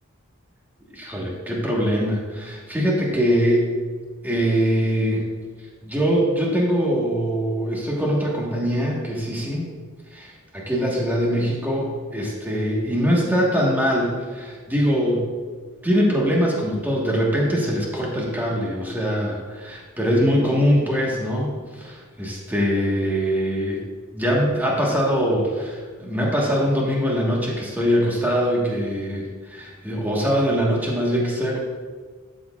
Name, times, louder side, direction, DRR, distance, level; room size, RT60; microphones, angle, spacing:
voice 1, 0.9-3.7 4.2-5.2 5.8-9.7 10.1-15.3 15.8-23.8 24.1-31.6, equal, 10° right, -3 dB, 1.3 m, -22 dB
12.5 x 6.4 x 2.3 m, 1.5 s
head